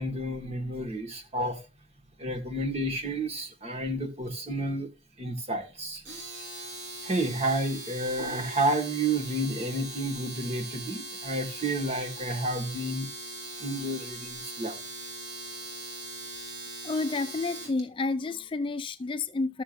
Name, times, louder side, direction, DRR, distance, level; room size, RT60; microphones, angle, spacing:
voice 1, 0.0-1.6 2.2-4.9 5.2-6.0 7.0-13.1 13.6-14.8, right 1 dB, 35° right, 1.7 m, -30 dB
Domestic sounds home sounds, 6.0-17.8, right 2 dB, 70° right, 3.2 m, -40 dB
voice 2, 16.8-19.6, left 3 dB, 30° left, 0.4 m, -30 dB
13.5 x 7.0 x 2.6 m
head